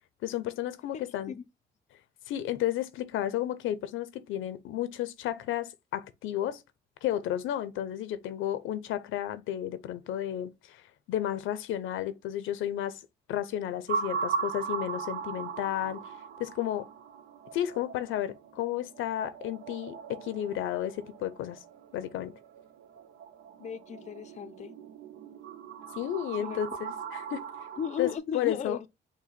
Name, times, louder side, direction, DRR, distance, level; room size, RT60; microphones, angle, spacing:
voice 1, 0.2-1.3 2.3-6.6 7.0-10.8 11.1-13.0 13.3-16.0 16.4-16.9 17.5-21.6 21.9-22.3 25.9-27.4 28.0-28.8, left 12 dB, 85° left, 0.6 m, -32 dB
voice 2, 0.9-1.4 23.6-24.7 26.4-26.6 27.8-28.9, left 7 dB, 35° left, 0.5 m, -36 dB
sound 1, 13.9-28.2, right 6 dB, 85° right, 0.5 m, -39 dB
5.9 x 2.2 x 4.1 m
cardioid pair, 90°, 20 cm